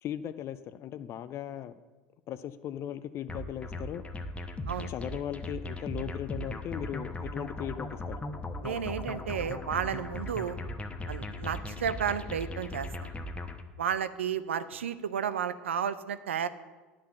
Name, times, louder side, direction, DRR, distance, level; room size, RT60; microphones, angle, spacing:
voice 1, 0.0-1.7 2.3-4.0 4.9-8.2, left 10 dB, 45° left, 12 dB, 0.5 m, -37 dB
sound 1, 3.3-13.6, left 1 dB, 20° left, 1.0 m, -38 dB
voice 2, 8.6-10.6 11.1-13.1 13.8-16.5, right 8 dB, 85° right, 13 dB, 0.5 m, -32 dB
9.9 x 5.9 x 7.5 m, 1.3 s
hypercardioid pair, 80°, 6 cm